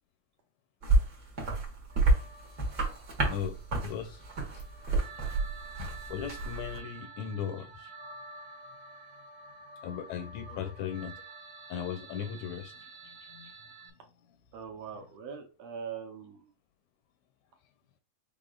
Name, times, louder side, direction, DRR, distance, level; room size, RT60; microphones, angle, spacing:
sound 1, 0.8-6.8, right 2 dB, 40° right, 1.5 m, -30 dB
sound 2, 1.9-13.9, right 3 dB, 90° right, 2.3 m, -49 dB
voice 1, 3.2-4.2 5.8-7.9 9.8-11.1 11.7-13.5, left 8 dB, 75° left, 1.8 m, -38 dB
voice 2, 14.5-16.4, right 6 dB, 70° right, 1.9 m, -42 dB
6.1 x 3.5 x 2.4 m
omnidirectional pair, 3.5 m